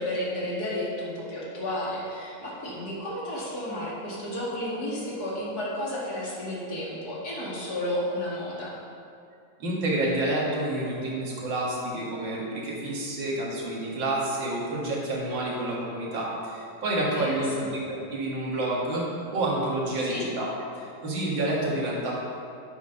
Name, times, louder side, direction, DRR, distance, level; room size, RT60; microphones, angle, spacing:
voice 1, 0.0-8.7 17.1-17.7 20.0-20.3, left 1 dB, 55° left, -6 dB, 2.4 m, -32 dB
voice 2, 9.6-19.1 19.3-20.5 20.8-22.2, right 1 dB, 80° right, -4 dB, 2.3 m, -29 dB
8.3 x 5.9 x 5.4 m, 2.5 s
omnidirectional pair, 2.0 m